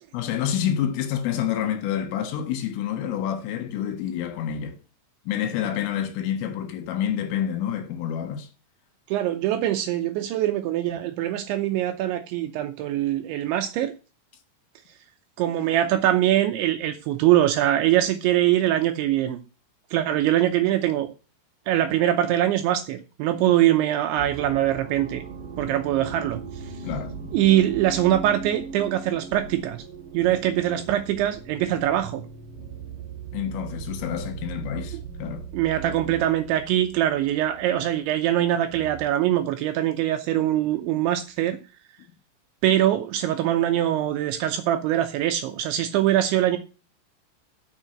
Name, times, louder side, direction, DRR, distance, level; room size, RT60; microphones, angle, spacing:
voice 1, 0.1-4.8 5.3-8.5 25.6-25.7 26.8-27.4 32.6-32.7 33.3-35.5, left 9 dB, 75° left, 3.9 m, -28 dB
voice 2, 9.1-13.9 15.4-19.4 19.9-21.1 21.7-25.2 25.6-26.4 27.3-29.8 30.1-32.2 35.5-41.6 42.6-46.6, right 12 dB, 80° right, 2.8 m, -23 dB
sound 1, 24.2-39.2, right 5 dB, 60° right, 2.1 m, -39 dB
7.3 x 6.7 x 7.7 m
omnidirectional pair, 5.9 m